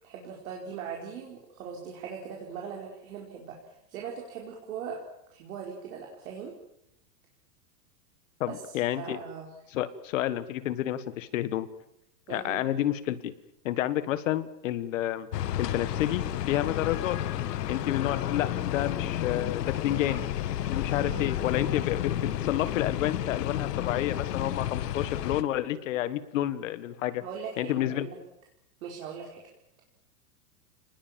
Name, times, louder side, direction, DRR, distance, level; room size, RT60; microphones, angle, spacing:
voice 1, 0.0-3.6 3.9-5.0 5.3-6.5 8.5-9.5 12.3-12.6 20.0-20.1 20.9-21.3 27.2-28.2 28.8-29.4, right 7 dB, 55° right, -1 dB, 4.7 m, -40 dB
voice 2, 8.4-9.2 9.7-11.7 12.3-13.3 13.6-15.3 15.6-17.2 17.7-20.3 20.7-27.2 27.6-28.1, left 13 dB, 50° left, 14 dB, 1.7 m, -30 dB
sound 1, 15.3-25.4, left 12 dB, 70° left, 1.6 m, -31 dB
29.5 x 20.0 x 7.5 m, 0.82 s
supercardioid pair, 175°, 50 cm